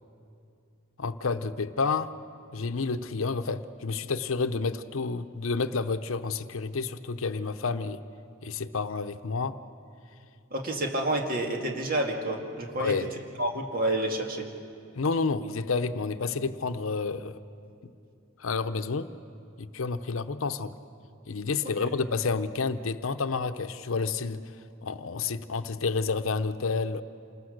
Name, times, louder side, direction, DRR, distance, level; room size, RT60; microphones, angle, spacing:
voice 1, 1.0-2.1 2.5-8.0 8.4-9.6 12.8-13.1 15.0-17.3 18.4-19.1 19.6-20.8 21.3-24.5 24.8-27.0, left 4 dB, 75° left, 11 dB, 0.7 m, -30 dB
voice 2, 10.5-12.9 13.4-14.5 21.6-21.9, right 1 dB, 45° right, 2 dB, 2.2 m, -29 dB
27.5 x 20.5 x 6.5 m, 2.6 s
head